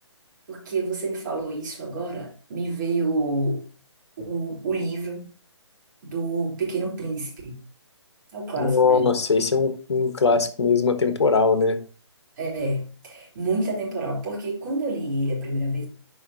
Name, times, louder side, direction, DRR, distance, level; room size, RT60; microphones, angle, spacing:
voice 1, 0.5-3.6 4.2-5.2 6.0-7.5 8.3-9.1 12.4-15.9, right 2 dB, 40° right, 3.6 m, -28 dB
voice 2, 8.6-11.8, left 4 dB, 65° left, 1.2 m, -21 dB
11.0 x 5.0 x 2.8 m
figure-of-eight pair, 145°, 15 cm